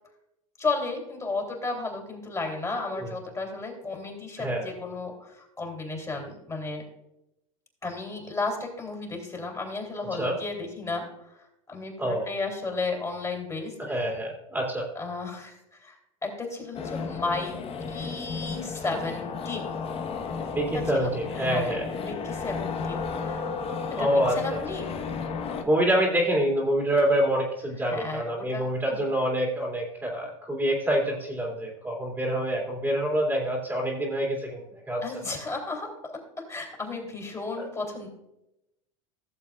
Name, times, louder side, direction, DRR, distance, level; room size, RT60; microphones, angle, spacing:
voice 1, 0.6-6.8 7.8-14.0 14.9-17.6 17.9-19.8 20.7-23.5 24.0-25.1 27.8-28.2 28.5-28.6 28.9-29.0 35.0-38.1, left 3 dB, 20° left, 1 dB, 3.0 m, -34 dB
voice 2, 4.4-4.7 10.2-10.4 12.0-12.3 13.8-14.9 20.5-21.8 24.0-24.6 25.6-35.0 37.6-37.7, right 1 dB, 10° right, -2 dB, 2.4 m, -26 dB
sound 1, 16.7-25.6, left 5 dB, 35° left, 1.2 m, -33 dB
16.0 x 7.1 x 2.4 m, 0.86 s
hypercardioid pair, 95°, 17 cm